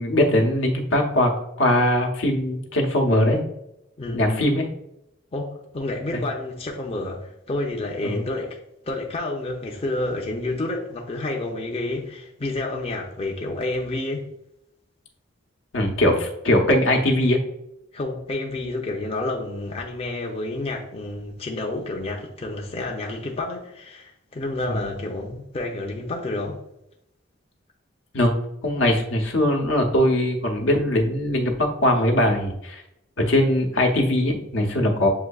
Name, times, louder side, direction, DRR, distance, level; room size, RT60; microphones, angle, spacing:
voice 1, 0.0-1.3 1.6-3.4 4.1-4.7 6.1-6.2 8.0-8.3 15.7-17.4 24.7-24.8 28.1-28.3 28.6-32.8 33.2-35.1, left 1 dB, 80° left, 2 dB, 0.9 m, -21 dB
voice 2, 4.0-4.5 5.3-8.6 8.9-14.3 17.9-26.6, left 2 dB, 30° left, 0 dB, 0.5 m, -29 dB
7.5 x 2.6 x 2.3 m, 0.83 s
head